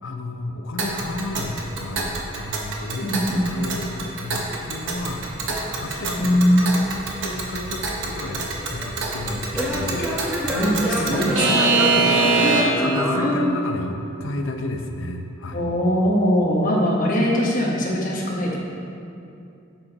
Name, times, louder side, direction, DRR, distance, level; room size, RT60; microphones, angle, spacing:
voice 1, 0.0-5.3 5.6-6.8 7.2-10.1 10.9-12.1 12.4-15.6, left 2 dB, 70° left, 4 dB, 0.7 m, -32 dB
Alarm / Clock, 0.8-12.9, right 3 dB, 65° right, 1.1 m, -25 dB
voice 2, 3.0-3.6 6.2-6.7 10.5-11.5 12.4-12.7 13.2-13.5 15.5-18.6, equal, 40° left, -3 dB, 1.3 m, -21 dB
Singing / Plucked string instrument, 8.3-14.1, equal, 5° right, 1.0 m, -28 dB
10.5 x 7.5 x 3.0 m, 2.6 s
head